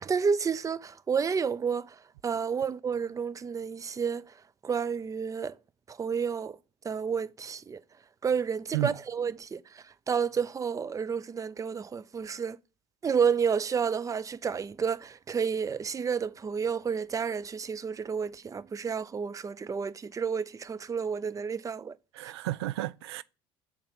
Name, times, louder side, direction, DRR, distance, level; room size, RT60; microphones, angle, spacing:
voice 1, 0.0-4.3 4.6-5.6 5.9-6.6 6.8-7.8 8.2-12.6 13.0-22.3, right 6 dB, 25° right, 0.5 m, -30 dB
voice 2, 22.1-23.2, right 16 dB, 80° right, 0.4 m, -32 dB
7.2 x 4.3 x 5.7 m
hypercardioid pair, 60°, 14 cm